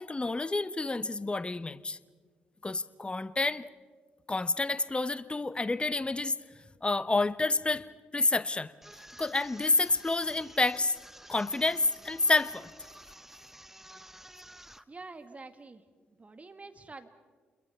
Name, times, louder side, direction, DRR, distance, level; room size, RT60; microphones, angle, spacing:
voice 1, 0.0-2.0 2.6-3.7 4.3-6.4 6.8-7.8 8.1-8.7 9.2-11.0 11.3-12.7, left 3 dB, 20° left, 16 dB, 0.9 m, -29 dB
sound 1, 8.8-14.8, right 1 dB, 5° right, 0.9 m, -51 dB
voice 2, 14.9-15.8 16.2-17.1, right 3 dB, 30° right, 8 dB, 2.0 m, -47 dB
29.5 x 22.0 x 5.7 m, 1.5 s
hypercardioid pair, 40°, 5 cm